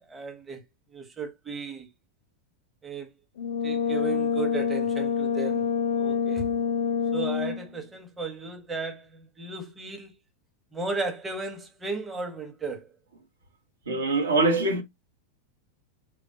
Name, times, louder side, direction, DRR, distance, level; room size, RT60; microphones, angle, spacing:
voice 1, 0.1-0.6 0.9-1.9 2.8-3.1 3.6-5.7 6.0-6.5 7.1-10.1 10.7-12.9, right 4 dB, 15° right, 0.7 m, -35 dB
Brass instrument, 3.4-7.7, left 6 dB, 55° left, 0.3 m, -27 dB
voice 2, 13.9-14.8, right 3 dB, 70° right, 0.7 m, -23 dB
3.1 x 2.2 x 2.6 m
figure-of-eight pair, 90°, 0 cm